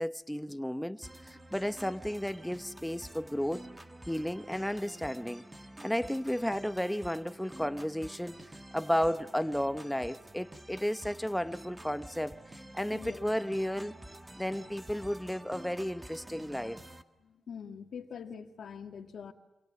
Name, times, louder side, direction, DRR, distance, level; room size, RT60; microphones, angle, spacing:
voice 1, 0.0-3.6 4.1-5.4 5.8-13.9 14.4-16.8, equal, 5° left, 0.8 m, -33 dB
sound 1, 1.0-17.0, right 1 dB, 15° right, 1.6 m, -49 dB
voice 2, 12.9-13.3 17.2-19.3, left 7 dB, 75° left, 2.0 m, -44 dB
28.5 x 25.5 x 7.6 m
cardioid pair, 95°, 0 cm